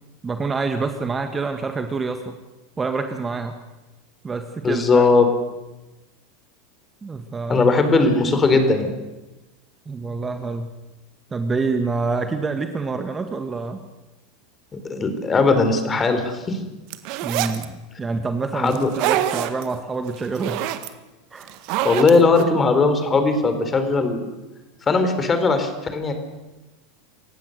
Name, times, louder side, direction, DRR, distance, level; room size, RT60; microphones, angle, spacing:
voice 1, 0.2-2.4 2.8-3.6 4.2-5.0 7.0-7.6 8.5-8.6 9.8-10.7 11.3-13.8 17.2-20.6 21.3-21.5, right 4 dB, 20° right, 7 dB, 1.8 m, -27 dB
voice 2, 4.6-5.3 7.5-8.9 14.7-16.6 18.5-18.9 21.8-24.2 24.9-26.1, left 3 dB, 25° left, 8 dB, 4.1 m, -18 dB
sound 1, 16.9-17.6 18.7-19.7 20.1-20.9 21.4-22.4, right 13 dB, 55° right, 1.6 m, -25 dB
28.0 x 15.5 x 6.7 m, 1.1 s
hypercardioid pair, 90°, 0 cm